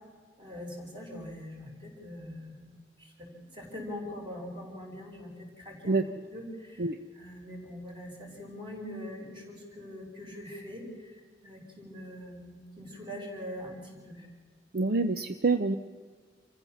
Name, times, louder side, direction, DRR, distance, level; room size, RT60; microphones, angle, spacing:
voice 1, 0.4-2.7 3.0-6.0 6.3-14.3, left 1 dB, 30° right, -1 dB, 5.3 m, -43 dB
voice 2, 14.7-15.8, right 3 dB, 55° right, 10 dB, 0.7 m, -26 dB
26.5 x 15.0 x 7.2 m, 1.5 s
head